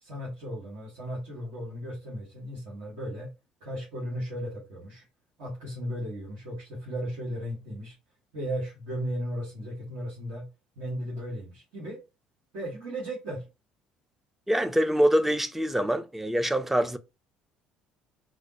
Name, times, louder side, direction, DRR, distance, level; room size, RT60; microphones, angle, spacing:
voice 1, 0.0-3.3 3.6-5.0 5.4-7.9 8.3-10.5 10.8-12.0 12.5-13.5, equal, 60° right, 1.5 m, -35 dB
voice 2, 14.5-17.0, equal, 5° right, 0.4 m, -24 dB
4.0 x 2.2 x 2.8 m
figure-of-eight pair, 55°, 4 cm